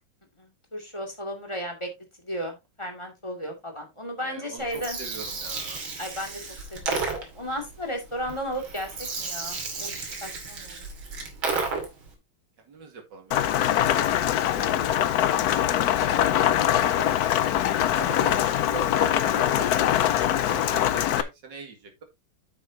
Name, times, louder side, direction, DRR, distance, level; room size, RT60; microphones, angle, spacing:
voice 1, 0.4-1.9 2.2-5.0 6.0-6.4 6.7-9.9 10.2-10.8, equal, 15° left, 3 dB, 2.3 m, -35 dB
voice 2, 4.2-5.8 12.7-15.2 17.9-22.0, right 4 dB, 60° right, 4 dB, 2.7 m, -42 dB
Gurgling, 4.6-12.1, right 4 dB, 75° right, 3.2 m, -33 dB
Rain, 13.3-21.2, left 11 dB, 70° left, 0.9 m, -23 dB
9.2 x 7.5 x 2.8 m, 0.21 s
omnidirectional pair, 2.2 m